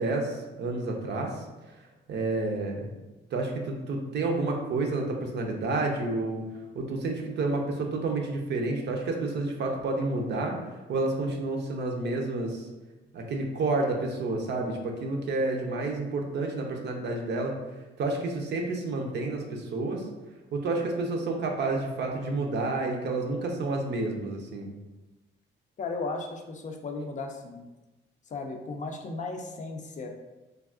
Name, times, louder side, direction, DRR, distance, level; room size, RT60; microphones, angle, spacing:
voice 1, 0.0-1.3 2.1-2.9 3.3-6.4 6.7-10.6 10.9-12.7 13.1-17.5 18.0-20.0 20.5-24.7, right 2 dB, 60° right, 1 dB, 0.6 m, -30 dB
voice 2, 25.8-27.6 28.3-30.1, left 3 dB, 40° left, 3 dB, 0.4 m, -35 dB
3.4 x 2.3 x 2.4 m, 1.1 s
cardioid pair, 90°, 20 cm